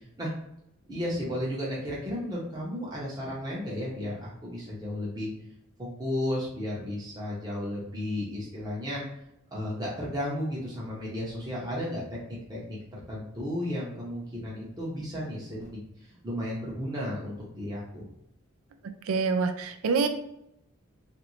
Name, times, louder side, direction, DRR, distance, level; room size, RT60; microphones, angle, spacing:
voice 1, 0.9-5.3 5.8-9.0 9.5-12.2 12.5-12.8 13.1-15.8 16.2-18.1, left 1 dB, 20° right, -6 dB, 0.7 m, -33 dB
voice 2, 19.1-20.1, right 4 dB, 80° right, 8 dB, 0.4 m, -26 dB
3.1 x 2.5 x 3.0 m, 0.78 s
head